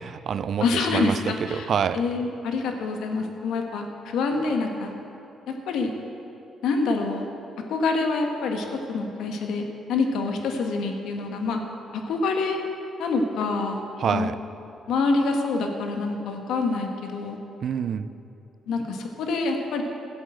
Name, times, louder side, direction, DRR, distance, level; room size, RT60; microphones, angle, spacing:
voice 1, 0.0-0.6 0.9-1.2 1.5-2.0 14.0-14.4 17.6-18.1, right 7 dB, 60° right, 14 dB, 0.5 m, -26 dB
voice 2, 0.6-1.7 1.9-4.9 5.5-5.9 6.6-7.3 7.7-11.6 11.9-12.6 13.0-13.8 14.1-14.3 14.9-17.4 18.7-19.8, left 3 dB, 80° left, 3 dB, 1.5 m, -26 dB
12.5 x 8.0 x 7.8 m, 2.9 s
cardioid pair, 90°, 0 cm